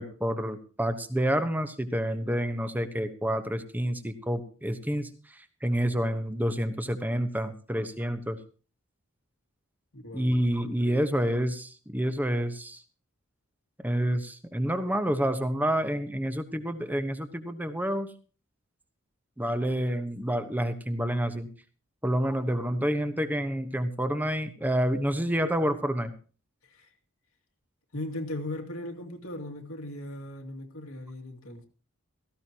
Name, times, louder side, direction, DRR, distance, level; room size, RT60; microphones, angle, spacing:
voice 1, 0.0-8.4 10.1-12.8 13.8-18.1 19.4-21.5 22.0-26.1, equal, 10° right, 10 dB, 1.2 m, -28 dB
voice 2, 9.9-11.1 26.6-26.9 27.9-31.6, left 1 dB, 85° left, 2 dB, 2.4 m, -38 dB
17.5 x 15.0 x 3.0 m, 0.37 s
head